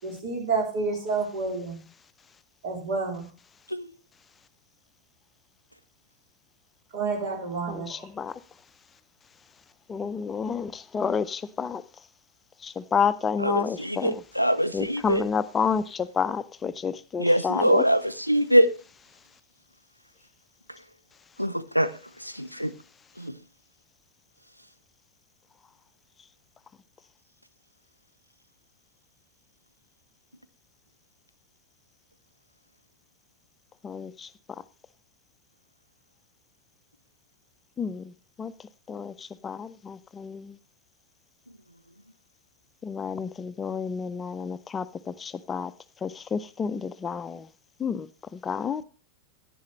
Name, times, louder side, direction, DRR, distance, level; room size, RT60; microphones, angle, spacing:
voice 1, 0.0-1.8 2.6-3.3 6.9-8.1, right 4 dB, 55° right, 3.8 m, -29 dB
voice 2, 7.7-8.4 9.9-11.8 12.6-14.2 14.7-17.8 33.8-34.3 37.8-38.1 38.4-38.5 38.9-40.6 42.8-45.7 46.0-47.5 47.8-48.8, left 6 dB, 20° left, 0.6 m, -30 dB
voice 3, 13.4-15.2 17.2-18.7 21.4-21.9 22.2-22.7 23.2-23.3, equal, 90° right, 0.6 m, -23 dB
10.5 x 10.0 x 3.1 m
figure-of-eight pair, 90°, 0 cm